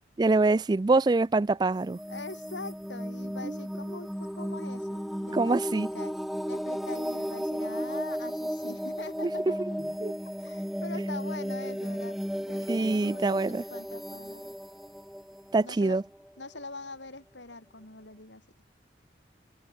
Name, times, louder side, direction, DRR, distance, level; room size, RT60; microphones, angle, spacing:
voice 1, 0.2-2.0 3.4-3.6 5.3-5.9 9.2-9.3 10.0-10.1 12.7-13.6 15.5-16.0, right 3 dB, 25° right, 0.3 m, -24 dB
sound 1, 1.8-16.4, equal, ahead, 0.9 m, -35 dB
voice 2, 2.1-6.1 6.5-9.6 10.4-14.6 15.6-16.0 16.4-18.5, left 3 dB, 90° left, 7.0 m, -43 dB
head